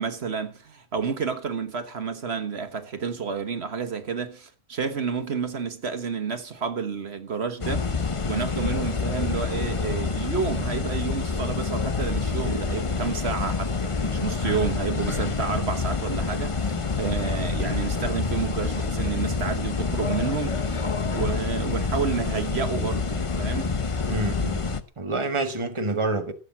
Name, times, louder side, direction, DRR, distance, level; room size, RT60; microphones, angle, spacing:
voice 1, 0.0-20.8 21.1-23.8, right 6 dB, 70° right, 1.6 m, -30 dB
sound 1, 7.6-24.8, left 4 dB, 30° left, 0.9 m, -27 dB
voice 2, 24.1-24.7 25.0-26.3, right 2 dB, 25° right, 1.5 m, -27 dB
16.0 x 7.9 x 7.4 m
omnidirectional pair, 1.1 m